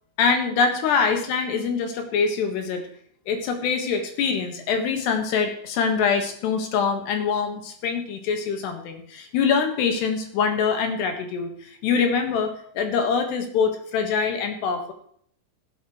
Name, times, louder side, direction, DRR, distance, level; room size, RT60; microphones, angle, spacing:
voice 1, 0.2-2.9 3.3-14.9, left 5 dB, 75° left, 5 dB, 3.6 m, -24 dB
15.5 x 12.0 x 3.2 m, 0.63 s
omnidirectional pair, 5.1 m